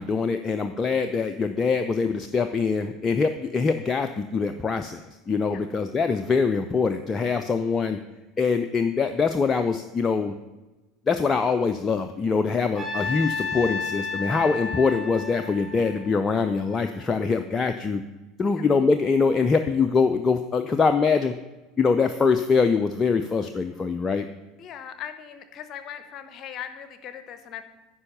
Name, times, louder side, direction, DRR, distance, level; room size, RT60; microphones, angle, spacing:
voice 1, 0.0-5.0 5.3-8.0 8.4-10.3 11.1-18.0 18.4-21.3 21.8-24.2, left 5 dB, 25° left, 7 dB, 0.5 m, -23 dB
Trumpet, 12.8-17.0, left 4 dB, 5° left, 2.9 m, -32 dB
voice 2, 24.6-27.6, left 9 dB, 40° left, 10 dB, 0.9 m, -39 dB
9.7 x 5.5 x 6.8 m, 1.1 s
figure-of-eight pair, 70°, 0 cm